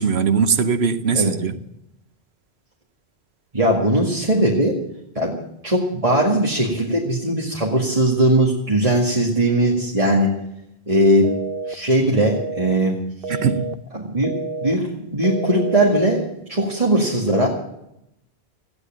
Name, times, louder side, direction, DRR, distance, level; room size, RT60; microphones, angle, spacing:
voice 1, 0.0-1.5 13.3-13.7, right 6 dB, 90° right, 1.2 m, -20 dB
voice 2, 3.5-4.8 5.2-5.4 5.6-10.3 10.9-11.3 11.7-13.0 13.3-13.4 13.9-14.3 14.6-17.5, right 1 dB, 35° right, 2.2 m, -19 dB
sound 1, 11.2-11.7 12.2-12.7 13.2-13.7 14.2-14.7 15.2-15.7, right 3 dB, 65° right, 0.9 m, -29 dB
15.0 x 9.8 x 8.9 m
omnidirectional pair, 1.1 m